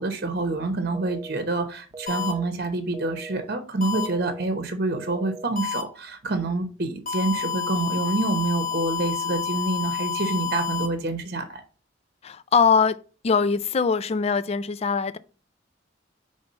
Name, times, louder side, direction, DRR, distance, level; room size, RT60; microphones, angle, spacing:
voice 1, 0.0-11.6, right 2 dB, 55° right, 0.9 m, -27 dB
sound 1, 0.9-1.4 1.9-2.4 2.9-3.4 3.9-4.4 4.9-5.4, right 2 dB, 20° right, 0.5 m, -40 dB
sound 2, 2.1-2.3 3.8-4.1 5.6-5.8 7.1-10.9, left 7 dB, 50° left, 1.2 m, -29 dB
voice 2, 12.2-15.2, left 5 dB, 35° left, 0.4 m, -22 dB
5.4 x 3.4 x 5.4 m
head